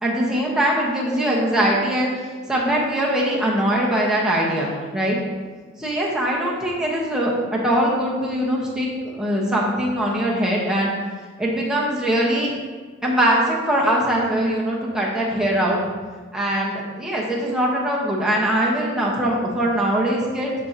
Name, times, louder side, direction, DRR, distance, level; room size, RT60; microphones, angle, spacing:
voice 1, 0.0-2.2 2.5-5.2 5.8-10.9 11.4-12.5 13.0-15.8 16.3-20.5, right 1 dB, 5° right, -5 dB, 1.2 m, -22 dB
10.0 x 4.4 x 2.9 m, 1.4 s
head